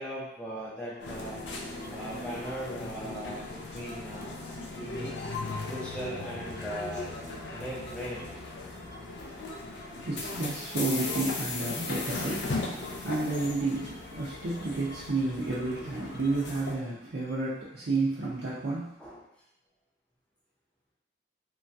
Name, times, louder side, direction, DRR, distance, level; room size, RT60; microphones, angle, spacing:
voice 1, 0.0-1.4 1.9-5.2 5.7-7.1 7.5-8.3 19.0-19.2, right 1 dB, 5° left, -7 dB, 0.6 m, -39 dB
sound 1, 0.9-18.6, equal, 50° left, 0.8 m, -53 dB
sound 2, 1.0-16.7, left 3 dB, 70° left, 0.4 m, -38 dB
voice 2, 9.9-19.0, right 2 dB, 70° right, -8 dB, 0.5 m, -31 dB
2.9 x 2.3 x 2.6 m, 0.82 s
head